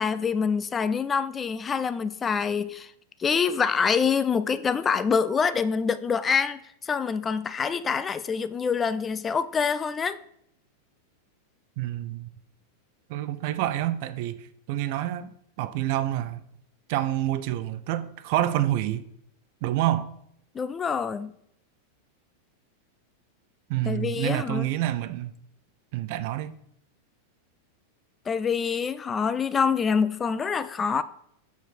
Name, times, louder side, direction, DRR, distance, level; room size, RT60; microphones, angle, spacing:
voice 1, 0.0-2.9 3.2-10.2 20.5-21.3 23.9-24.7 28.3-31.0, left 6 dB, 20° left, 0.3 m, -26 dB
voice 2, 11.8-12.3 13.1-15.3 15.6-16.4 16.9-19.0 19.6-20.1 23.7-25.3 25.9-26.5, right 13 dB, 45° right, 0.4 m, -28 dB
6.4 x 4.7 x 4.4 m
figure-of-eight pair, 90°, 0 cm